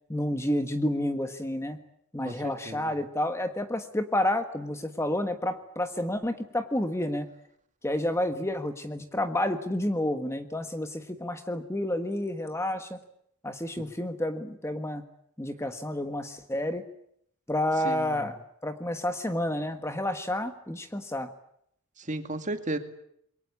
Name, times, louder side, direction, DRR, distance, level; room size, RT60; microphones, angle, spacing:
voice 1, 0.1-1.8 2.1-7.3 7.8-13.0 13.4-15.0 15.4-16.8 17.5-21.3, left 1 dB, 10° left, 8 dB, 1.5 m, -30 dB
voice 2, 2.2-2.9 17.8-18.1 22.0-22.8, right 2 dB, 35° right, 7 dB, 2.3 m, -34 dB
27.0 x 23.0 x 8.5 m, 0.72 s
head